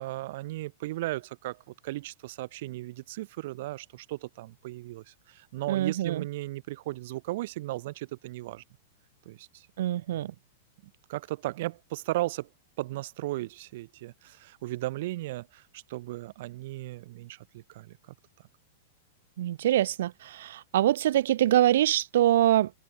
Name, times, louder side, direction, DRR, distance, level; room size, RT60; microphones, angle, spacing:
voice 1, 0.0-8.6 9.3-9.7 11.1-12.5 12.8-18.1, right 17 dB, 50° right, 4.1 m, -36 dB
voice 2, 5.7-6.2 9.8-10.3 19.4-22.7, right 12 dB, 65° right, 0.4 m, -24 dB
supercardioid pair, 165°, 0 cm